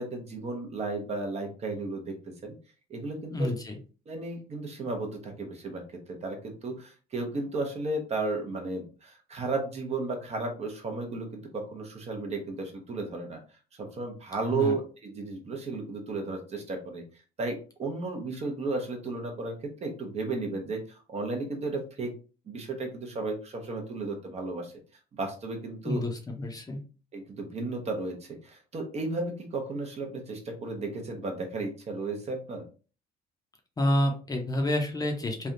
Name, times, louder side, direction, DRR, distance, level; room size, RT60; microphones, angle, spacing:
voice 1, 0.0-2.2 2.4-2.6 2.9-3.5 4.1-5.8 6.1-13.4 13.8-17.0 17.4-20.8 21.1-22.1 22.5-24.7 25.1-26.0 27.1-32.7, right 3 dB, 40° right, 3 dB, 0.9 m, -34 dB
voice 2, 3.3-3.7 14.5-14.8 25.9-26.8 33.8-35.5, left 1 dB, 20° left, 2 dB, 0.7 m, -28 dB
3.4 x 2.3 x 2.6 m, 0.35 s
cardioid pair, 110°, 17 cm